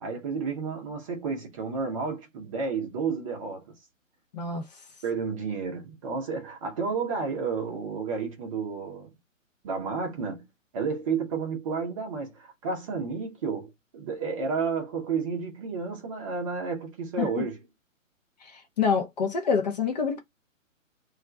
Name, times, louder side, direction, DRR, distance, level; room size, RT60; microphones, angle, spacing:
voice 1, 0.0-3.7 5.0-9.1 9.6-10.5 10.7-17.6, right 5 dB, 25° right, 0.7 m, -31 dB
voice 2, 18.4-20.2, left 5 dB, 35° left, 0.6 m, -26 dB
2.4 x 2.1 x 3.7 m
hypercardioid pair, 140°, 40 cm